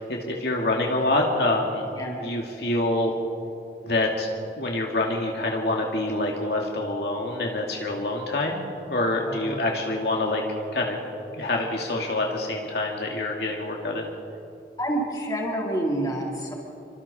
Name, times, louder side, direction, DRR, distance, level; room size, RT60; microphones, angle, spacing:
voice 1, 0.0-1.8 2.2-3.1 3.8-4.3 4.6-10.4 10.7-11.0 11.4-14.1, left 2 dB, 65° left, 0 dB, 2.4 m, -26 dB
voice 2, 9.1-9.6 14.8-16.5, right 1 dB, 20° left, -3 dB, 3.9 m, -28 dB
29.0 x 25.0 x 4.4 m, 2.7 s
head